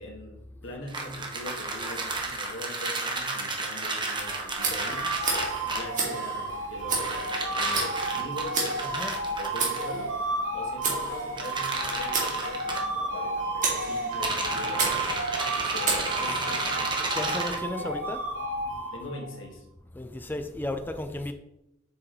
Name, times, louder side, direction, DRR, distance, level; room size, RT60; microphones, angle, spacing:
voice 1, 0.0-5.1 5.6-8.6 9.3-10.2 10.5-15.1 15.5-17.9 18.9-19.6, left 2 dB, 90° left, 1.8 m, -42 dB
sound 1, 0.9-6.0 7.0-9.8 11.4-12.8 14.1-17.6, right 3 dB, 25° right, 1.0 m, -32 dB
sound 2, 4.1-19.4, right 2 dB, 80° right, 1.1 m, -32 dB
Tick, 4.6-16.6, right 4 dB, 45° right, 2.1 m, -34 dB
voice 2, 8.8-9.2 17.1-18.2 19.9-21.3, left 1 dB, 10° left, 0.4 m, -34 dB
7.5 x 6.1 x 3.1 m
head